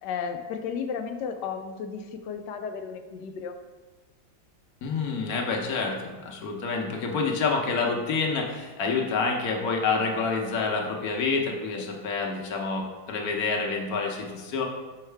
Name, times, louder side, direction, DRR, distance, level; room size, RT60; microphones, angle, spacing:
voice 1, 0.0-3.6 6.9-7.1 11.7-11.8, left 6 dB, 85° left, 7 dB, 1.2 m, -34 dB
voice 2, 4.8-14.7, left 4 dB, 65° left, 1 dB, 1.3 m, -28 dB
5.7 x 5.5 x 3.3 m, 1.2 s
omnidirectional pair, 1.8 m